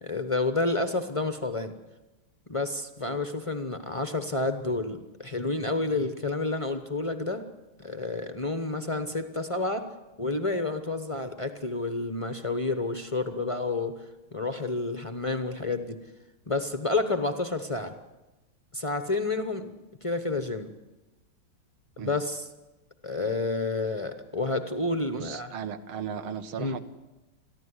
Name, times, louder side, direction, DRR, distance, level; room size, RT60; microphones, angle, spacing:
voice 1, 0.0-1.7 2.5-7.4 7.8-9.8 10.2-13.9 14.3-16.0 16.5-17.9 18.7-19.7 20.0-20.7 22.0-22.5 23.0-25.5 26.6-26.8, left 2 dB, 40° left, 8 dB, 0.4 m, -29 dB
voice 2, 25.1-26.8, right 8 dB, 75° right, 10 dB, 1.9 m, -36 dB
22.5 x 14.5 x 9.7 m, 1.1 s
omnidirectional pair, 2.4 m